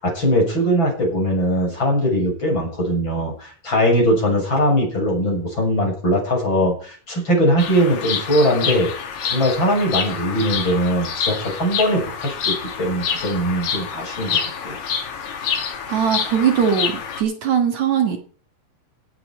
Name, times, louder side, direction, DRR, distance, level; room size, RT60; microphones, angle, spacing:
voice 1, 0.0-8.9 9.2-14.8, equal, 35° left, -1 dB, 7.6 m, -20 dB
Bird vocalization bird call bird song, 7.6-17.2, left 7 dB, 85° left, 4.0 m, -27 dB
voice 2, 15.9-18.2, right 8 dB, 60° right, 5 dB, 2.8 m, -20 dB
17.5 x 8.7 x 4.8 m, 0.42 s
omnidirectional pair, 3.9 m